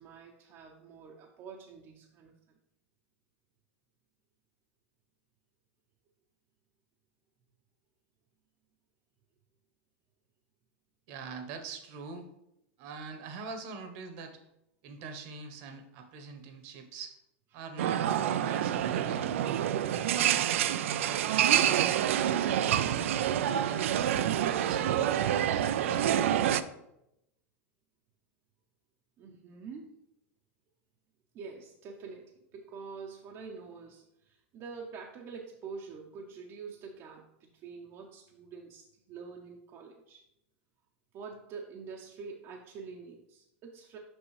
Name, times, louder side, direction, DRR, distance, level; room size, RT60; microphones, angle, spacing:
voice 1, 0.0-2.3 29.2-30.0 31.3-40.2 41.1-44.0, right 5 dB, 40° right, 1 dB, 0.7 m, -46 dB
voice 2, 11.1-12.3 12.8-14.4 14.8-17.2 17.5-18.1 18.4-19.3 20.1-22.0 22.4-23.1 23.6-26.4, right 4 dB, 55° right, 6 dB, 1.0 m, -44 dB
sound 1, 17.8-26.6, right 10 dB, 85° right, 0.3 m, -27 dB
6.1 x 5.3 x 3.2 m, 0.82 s
supercardioid pair, 125°, 7 cm